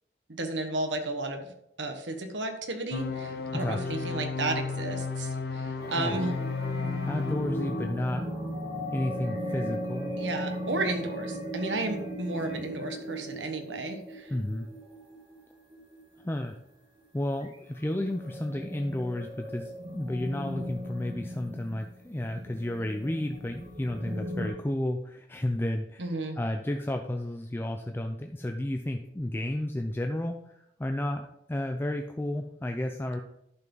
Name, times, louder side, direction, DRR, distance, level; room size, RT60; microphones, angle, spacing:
voice 1, 0.4-1.5 1.8-6.3 10.2-14.3 26.0-26.4, right 2 dB, 85° right, 5 dB, 1.3 m, -33 dB
sound 1, 2.9-7.9, left 4 dB, 60° left, 0.7 m, -34 dB
voice 2, 3.5-4.0 5.8-6.3 7.0-8.3 8.9-10.2 14.3-14.7 16.2-16.6 17.1-33.2, left 1 dB, 10° left, 4 dB, 0.4 m, -32 dB
sound 2, 5.8-16.4 17.0-17.1 17.4-17.6 18.0-24.5, equal, 30° right, 2.3 m, -37 dB
10.5 x 5.9 x 3.9 m, 0.78 s
head